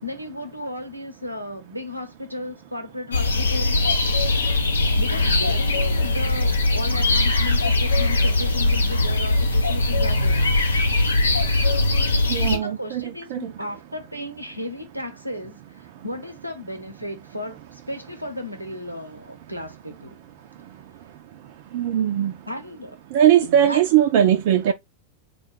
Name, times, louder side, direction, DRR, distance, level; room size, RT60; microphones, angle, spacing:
voice 1, 0.0-3.8 5.0-10.5 12.4-20.2 22.5-23.0 23.4-23.8, left 1 dB, 90° right, 0.7 m, -34 dB
sound 1, 3.1-12.6, left 2 dB, 75° left, 0.6 m, -20 dB
voice 2, 12.3-13.5 21.7-22.3 23.1-24.7, right 10 dB, 50° right, 0.4 m, -19 dB
4.0 x 2.3 x 3.1 m
figure-of-eight pair, 90°, 0 cm